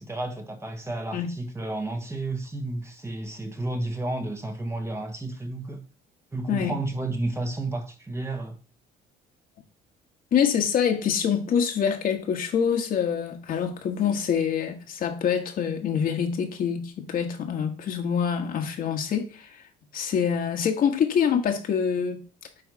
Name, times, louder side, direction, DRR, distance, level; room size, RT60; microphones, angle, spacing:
voice 1, 0.0-5.8 6.3-8.6, right 2 dB, 15° right, 1.3 m, -31 dB
voice 2, 10.3-19.6 19.9-22.2, left 7 dB, 60° left, 1.6 m, -25 dB
9.0 x 3.5 x 4.8 m
cardioid pair, 110°, 17 cm